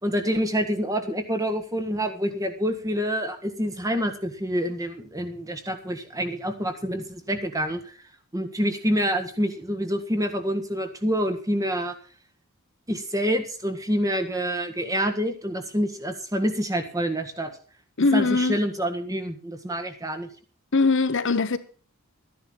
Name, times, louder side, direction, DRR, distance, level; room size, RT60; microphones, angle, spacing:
voice 1, 0.0-7.9 8.3-11.9 12.9-17.5 18.1-20.3, equal, 15° right, 1.6 m, -27 dB
voice 2, 18.0-18.6 20.7-21.6, left 3 dB, 55° left, 1.0 m, -21 dB
13.5 x 10.5 x 6.1 m
head